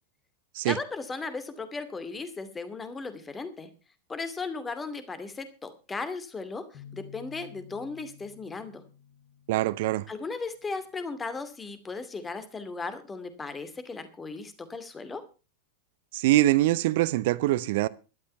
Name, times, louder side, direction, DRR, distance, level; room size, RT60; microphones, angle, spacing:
voice 1, 0.6-3.7 4.1-8.8 10.1-15.2, left 4 dB, 15° left, 2.4 m, -36 dB
sound 1, 6.7-10.4, left 8 dB, 40° left, 4.0 m, -51 dB
voice 2, 9.5-10.1 16.1-17.9, right 16 dB, 50° right, 0.6 m, -23 dB
12.5 x 12.5 x 5.7 m
figure-of-eight pair, 90°, 0 cm